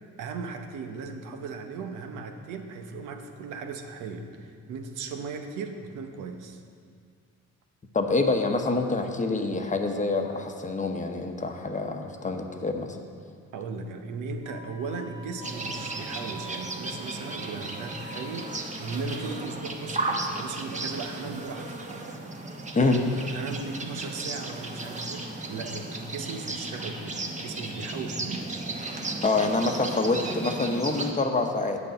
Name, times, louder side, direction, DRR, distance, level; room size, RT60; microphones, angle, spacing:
voice 1, 0.0-6.6 13.5-21.9 23.2-28.5, right 4 dB, 85° right, 5 dB, 0.9 m, -37 dB
voice 2, 7.9-13.0 22.7-23.1 29.2-31.8, left 3 dB, 25° left, 4 dB, 0.9 m, -26 dB
Wind instrument woodwind instrument, 14.4-18.6, right 1 dB, 85° left, 1.4 m, -46 dB
sound 1, 15.4-31.1, right 2 dB, 25° right, 1.0 m, -35 dB
8.3 x 5.3 x 7.8 m, 2.1 s
cardioid pair, 90°, 30 cm